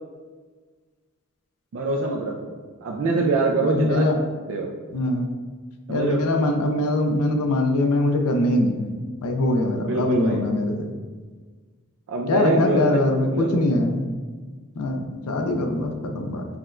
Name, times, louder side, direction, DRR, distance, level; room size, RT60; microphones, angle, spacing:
voice 1, 1.7-2.5 2.8-4.0 4.5-4.7 5.9-6.2 9.8-10.4 12.1-12.8 13.3-13.6, right 3 dB, 65° right, -1 dB, 0.4 m, -24 dB
voice 2, 3.6-4.2 4.9-5.3 5.9-8.9 9.2-10.9 12.3-14.1 14.8-16.5, left 1 dB, 85° left, 4 dB, 0.5 m, -22 dB
5.8 x 2.2 x 2.4 m, 1.5 s
head